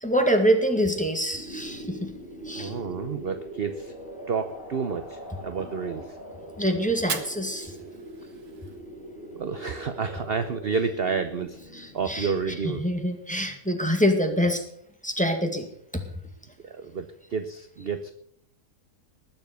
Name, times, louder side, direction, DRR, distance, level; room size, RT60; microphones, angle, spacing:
voice 1, 0.0-2.1 2.5-2.7 6.6-7.7 11.7-12.3 12.8-14.6 15.0-15.7 15.9-16.0, equal, 5° left, 4 dB, 1.8 m, -25 dB
sound 1, 1.3-12.8, right 1 dB, 35° left, 6.8 m, -42 dB
voice 2, 2.6-3.9 4.3-6.2 9.3-11.6 11.9-12.8 16.6-18.1, right 5 dB, 45° right, 9 dB, 0.9 m, -30 dB
Fire, 6.9-9.0, right 6 dB, 75° right, 1.9 m, -38 dB
20.0 x 7.2 x 6.9 m, 0.69 s
omnidirectional pair, 1.6 m